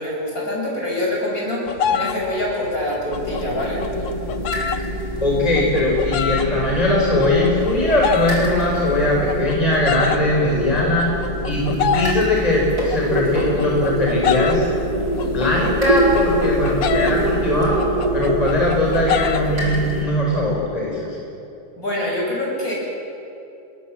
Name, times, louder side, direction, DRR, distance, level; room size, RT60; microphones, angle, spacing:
voice 1, 0.0-3.8 21.8-22.7, left 1 dB, 45° left, -3 dB, 8.4 m, -25 dB
sound 1, 1.7-14.7 15.0-19.4, left 8 dB, 75° left, 1.7 m, -27 dB
sound 2, 3.1-20.0, right 1 dB, 50° right, 5.5 m, -25 dB
voice 2, 5.2-11.1 11.4-14.6 15.3-17.8 18.1-21.2, left 1 dB, 20° left, -3 dB, 4.8 m, -20 dB
30.0 x 20.5 x 7.5 m, 2.7 s
omnidirectional pair, 2.1 m